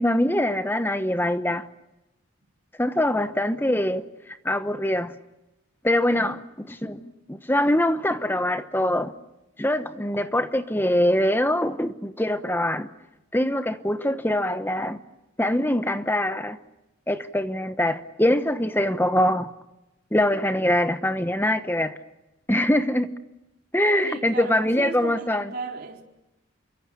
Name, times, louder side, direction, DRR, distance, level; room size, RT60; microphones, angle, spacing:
voice 1, 0.0-1.7 2.8-4.0 4.4-5.1 5.8-9.1 9.6-12.9 13.3-15.0 15.4-16.6 17.1-19.5 20.1-22.0 22.5-23.1 23.7-25.5, left 1 dB, 10° left, 1.0 m, -23 dB
voice 2, 24.0-26.0, right 3 dB, 45° right, 4.2 m, -35 dB
28.5 x 24.0 x 8.5 m
head